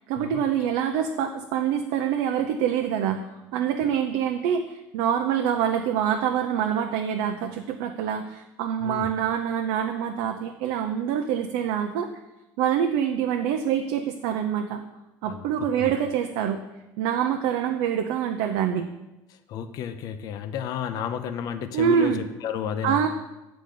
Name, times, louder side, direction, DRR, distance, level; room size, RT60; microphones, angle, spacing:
voice 1, 0.1-12.1 12.6-14.8 15.2-16.6 17.0-18.9 21.7-22.2 22.8-23.1, right 8 dB, 80° right, 4 dB, 0.6 m, -25 dB
voice 2, 15.2-15.9 19.3-23.1, left 8 dB, 60° left, 9 dB, 0.6 m, -32 dB
8.5 x 4.0 x 6.6 m, 0.99 s
cardioid pair, 115°, 7 cm